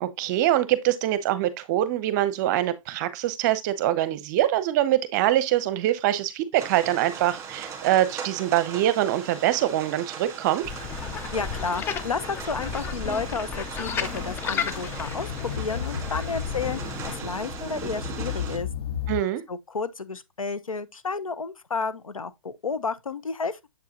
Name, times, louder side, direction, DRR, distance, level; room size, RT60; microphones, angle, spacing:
voice 1, 0.0-10.6 19.1-19.4, right 13 dB, 35° right, 0.8 m, -24 dB
sound 1, 6.6-18.6, right 6 dB, 15° right, 1.7 m, -39 dB
sound 2, 10.6-17.2, left 6 dB, 15° left, 0.5 m, -33 dB
voice 2, 11.3-18.7 19.5-23.7, left 4 dB, 85° left, 1.0 m, -31 dB
sound 3, 13.9-19.2, left 8 dB, 50° left, 0.7 m, -34 dB
7.5 x 4.8 x 2.9 m
hypercardioid pair, 130°, 17 cm